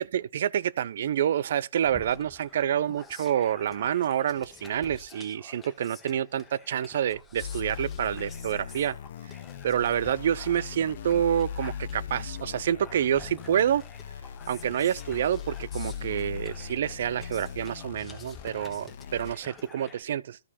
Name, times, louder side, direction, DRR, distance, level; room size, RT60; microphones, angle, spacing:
voice 1, 0.1-8.9 9.6-13.8 14.5-20.4, right 10 dB, 55° right, 0.4 m, -28 dB
sound 1, 1.8-20.0, left 5 dB, 10° left, 1.2 m, -50 dB
sound 2, 7.4-19.3, left 8 dB, 55° left, 0.6 m, -39 dB
13.0 x 4.9 x 4.2 m
hypercardioid pair, 155°, 0 cm